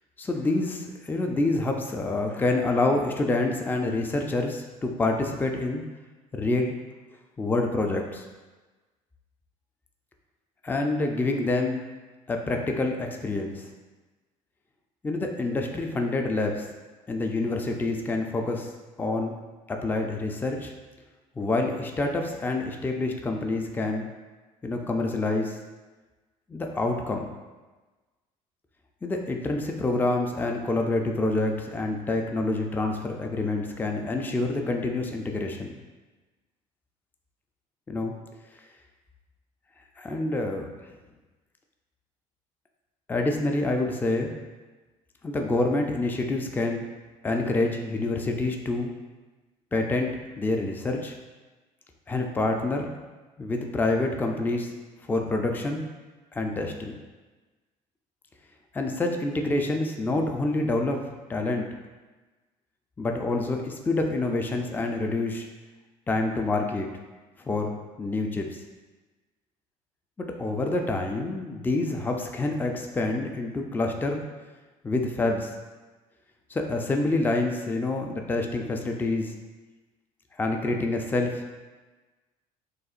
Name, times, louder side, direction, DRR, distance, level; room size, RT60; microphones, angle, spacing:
voice 1, 0.2-5.8 6.3-6.7 7.4-8.2 10.6-11.8 12.3-13.6 15.0-16.7 17.1-18.7 19.0-19.3 19.7-20.7 21.4-24.1 24.6-25.6 26.5-27.3 29.0-35.7 37.9-38.1 40.0-40.7 43.1-44.3 45.2-46.9 47.2-48.9 49.7-51.1 52.1-52.9 53.4-54.7 55.1-55.9 56.3-56.9 58.7-61.0 61.3-61.7 63.0-65.5 66.1-66.9 67.5-68.6 70.2-74.2 74.8-75.5 76.5-79.3 80.4-81.4, left 2 dB, 15° left, 3 dB, 0.4 m, -27 dB
6.4 x 2.4 x 2.5 m, 1.2 s
cardioid pair, 110°, 14 cm